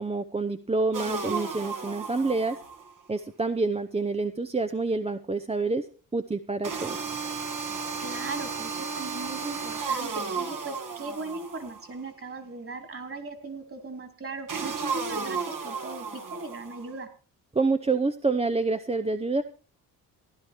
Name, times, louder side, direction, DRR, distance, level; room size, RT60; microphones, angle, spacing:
voice 1, 0.0-2.6 3.1-5.9 6.1-7.0 17.5-19.4, right 3 dB, 15° right, 9 dB, 0.8 m, -27 dB
sound 1, 0.9-2.9 6.6-11.9 14.5-16.9, right 5 dB, 55° right, 2.3 m, -33 dB
voice 2, 8.0-17.1, right 3 dB, 35° right, 7 dB, 3.4 m, -38 dB
16.0 x 11.0 x 4.5 m, 0.38 s
cardioid pair, 80°, 38 cm